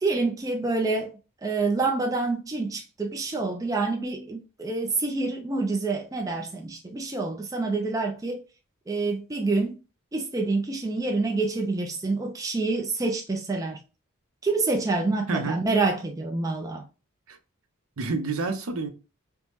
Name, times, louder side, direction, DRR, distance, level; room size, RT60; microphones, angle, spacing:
voice 1, 0.0-1.1 1.4-8.4 8.9-9.8 10.1-13.8 14.4-16.8, right 3 dB, 15° right, 0.3 m, -27 dB
voice 2, 15.3-15.6 17.3-17.4 18.0-18.9, right 3 dB, 70° right, 0.6 m, -28 dB
3.4 x 2.0 x 2.8 m
head